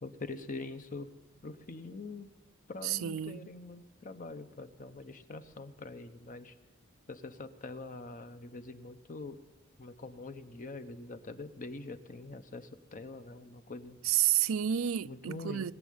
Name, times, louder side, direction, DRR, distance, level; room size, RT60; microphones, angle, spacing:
voice 1, 0.0-1.1 1.4-2.3 2.7-6.5 7.1-9.4 9.8-14.0 15.0-15.7, left 3 dB, 40° left, 0.9 m, -44 dB
voice 2, 2.8-3.5 14.0-15.7, right 11 dB, 85° right, 0.5 m, -30 dB
20.0 x 7.4 x 9.5 m
head